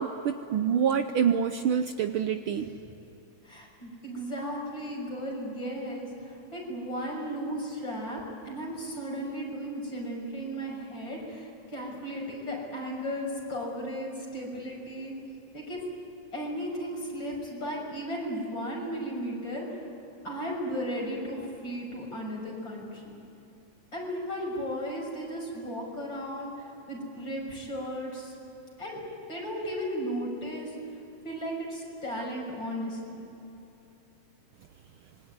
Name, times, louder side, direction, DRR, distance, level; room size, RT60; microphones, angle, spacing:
voice 1, 0.0-2.7, right 7 dB, 85° right, 8 dB, 1.1 m, -26 dB
voice 2, 3.4-8.2 8.4-15.1 15.5-15.8 16.3-19.8 20.2-23.2 23.9-28.3 28.8-29.0 29.3-30.7 31.2-33.3, equal, 35° left, -1 dB, 7.1 m, -35 dB
26.0 x 22.5 x 9.7 m, 2.9 s
omnidirectional pair, 3.4 m